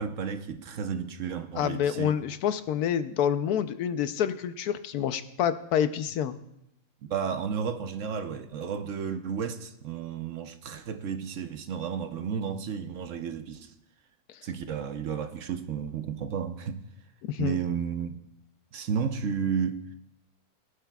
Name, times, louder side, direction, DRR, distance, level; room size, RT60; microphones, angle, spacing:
voice 1, 0.0-2.2 7.0-13.7 14.4-16.8 17.4-18.2 18.7-19.9, right 7 dB, 65° right, 1.0 m, -32 dB
voice 2, 1.5-6.4 17.2-17.6, left 9 dB, 90° left, 1.2 m, -28 dB
21.0 x 11.5 x 2.3 m
omnidirectional pair, 1.6 m